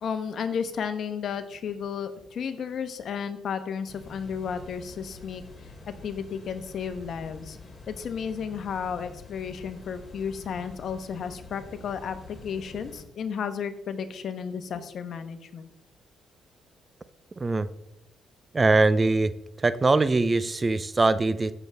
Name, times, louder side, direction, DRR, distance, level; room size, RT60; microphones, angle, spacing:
voice 1, 0.0-5.4 5.9-7.6 7.9-15.7, left 7 dB, 60° left, 9 dB, 1.1 m, -33 dB
sound 1, 3.9-13.0, left 3 dB, 30° left, 3.2 m, -47 dB
voice 2, 18.5-19.3 19.6-21.5, right 3 dB, 25° right, 14 dB, 0.6 m, -22 dB
15.0 x 7.1 x 3.5 m, 0.80 s
cardioid pair, 90°, 0 cm